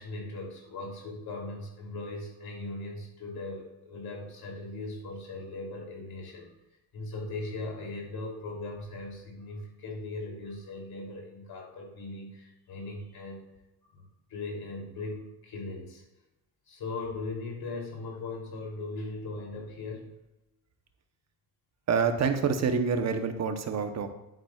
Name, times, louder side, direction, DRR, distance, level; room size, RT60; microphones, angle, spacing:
voice 1, 0.0-6.5 6.9-13.4 13.9-16.0 16.7-20.1, left 2 dB, 80° left, -1 dB, 3.1 m, -39 dB
voice 2, 21.9-24.1, right 5 dB, 45° right, 7 dB, 0.9 m, -27 dB
10.5 x 8.7 x 2.4 m, 0.97 s
cardioid pair, 170°, 37 cm